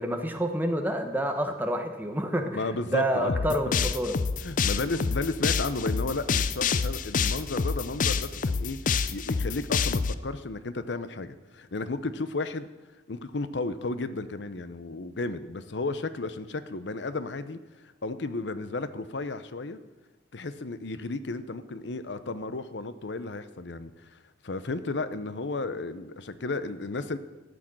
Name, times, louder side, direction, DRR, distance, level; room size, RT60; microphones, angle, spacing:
voice 1, 0.0-2.6 2.8-4.1, equal, 10° right, 5 dB, 1.2 m, -28 dB
voice 2, 2.5-3.4 4.4-8.8 9.1-12.7 13.1-19.8 20.3-24.2 24.4-27.2, left 3 dB, 75° left, 12 dB, 0.8 m, -33 dB
sound 1, 3.3-10.1, left 5 dB, 45° left, 0.5 m, -27 dB
13.5 x 6.3 x 9.0 m, 1.2 s
head